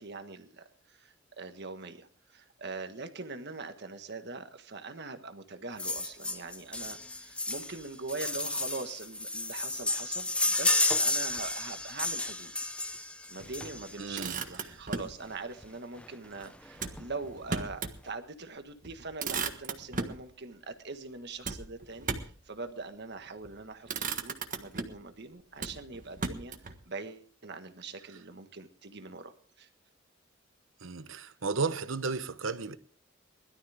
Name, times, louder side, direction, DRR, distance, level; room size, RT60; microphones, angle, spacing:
voice 1, 0.0-12.5 13.3-26.5 26.8-29.7, right 3 dB, 55° right, 1.5 m, -42 dB
sound 1, 5.8-14.1 15.2-15.3 15.6-15.7 16.0-16.1 16.5-17.1 17.5-17.6, left 2 dB, 5° left, 0.7 m, -32 dB
Motor vehicle (road), 13.9-15.2 16.7-18.0 18.4-18.5 18.8-20.2 21.4-22.4 23.3-23.5 23.8-25.1 25.6-26.8, right 4 dB, 40° right, 1.5 m, -36 dB
voice 2, 14.0-14.4 14.7-14.8 30.8-32.8, right 4 dB, 75° right, 1.0 m, -34 dB
21.0 x 12.5 x 3.5 m
head